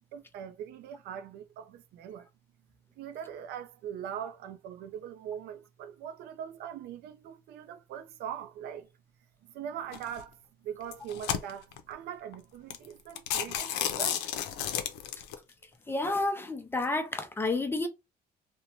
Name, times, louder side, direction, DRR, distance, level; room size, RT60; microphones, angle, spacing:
voice 1, 0.1-2.3 3.0-8.9 9.4-14.3, right 9 dB, 75° right, 0.4 m, -41 dB
sound 1, 9.9-10.2 10.8-11.8 12.3-12.4 12.7-12.9 13.2-15.3, left 10 dB, 90° left, 0.5 m, -32 dB
voice 2, 15.9-17.9, left 2 dB, 15° left, 0.4 m, -30 dB
2.6 x 2.1 x 2.9 m
cardioid pair, 110°, 17 cm